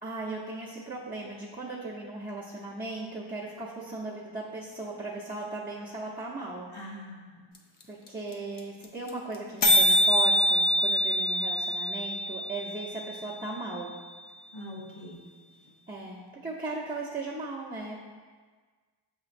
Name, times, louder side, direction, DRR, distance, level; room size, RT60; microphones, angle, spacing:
voice 1, 0.0-6.7 7.9-13.9 15.9-18.0, right 3 dB, 20° right, -10 dB, 0.7 m, -37 dB
voice 2, 6.7-7.4 14.5-15.2, left 1 dB, 90° left, -6 dB, 1.0 m, -43 dB
sound 1, 7.5-7.6 7.8-7.9 8.1-8.3 8.6-8.7 8.8-9.1 9.3-9.4 9.6-13.6, equal, 45° left, 0.6 m, -25 dB
6.8 x 3.0 x 2.5 m, 1.5 s
wide cardioid pair, 50°, 47 cm